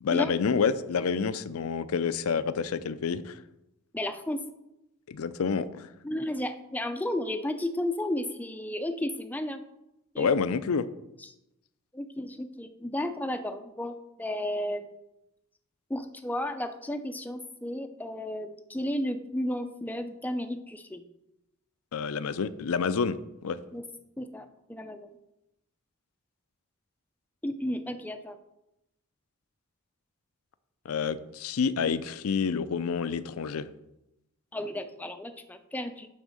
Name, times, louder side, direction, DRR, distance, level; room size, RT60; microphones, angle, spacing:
voice 1, 0.0-3.4 5.1-5.9 10.2-10.9 21.9-23.6 30.9-33.7, left 5 dB, 75° left, 15 dB, 0.4 m, -28 dB
voice 2, 3.9-4.4 6.0-9.7 10.1-10.3 11.9-14.9 15.9-21.0 23.7-23.8 24.2-25.1 27.4-28.4 34.5-36.1, left 1 dB, 5° left, 8 dB, 0.4 m, -33 dB
9.0 x 3.5 x 6.3 m, 0.89 s
head